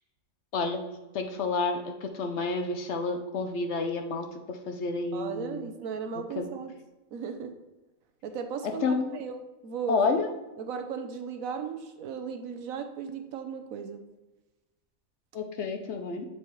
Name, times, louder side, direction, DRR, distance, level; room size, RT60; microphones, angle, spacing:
voice 1, 1.1-5.7 6.4-6.5 8.8-9.2 9.9-10.3 15.3-16.3, left 4 dB, 60° left, 5 dB, 0.9 m, -30 dB
voice 2, 5.1-6.7 7.1-7.5 8.2-9.4 9.6-10.1 10.6-14.0, right 6 dB, 75° right, 7 dB, 1.1 m, -36 dB
8.4 x 4.4 x 3.1 m, 1.1 s
omnidirectional pair, 1.5 m